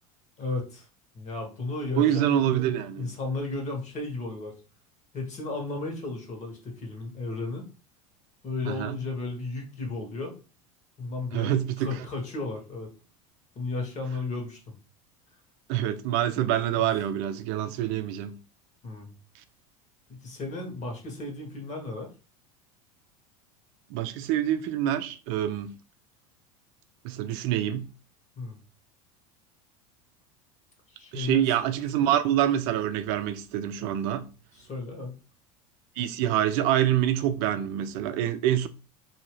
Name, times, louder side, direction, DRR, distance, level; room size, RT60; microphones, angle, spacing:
voice 1, 0.4-0.9 1.1-2.4 2.9-4.6 5.1-7.6 8.4-10.3 11.0-12.9 13.5-14.6 16.8-16.9 18.8-19.1 20.1-22.1 28.4-28.6 30.9-31.5 34.5-35.1, left 3 dB, 40° left, 1.4 m, -34 dB
voice 2, 2.0-3.1 8.7-9.0 11.3-12.1 15.7-18.4 23.9-25.8 27.0-27.9 31.1-34.3 36.0-38.7, right 11 dB, 60° right, 0.4 m, -26 dB
2.7 x 2.7 x 3.1 m
hypercardioid pair, 100°, 19 cm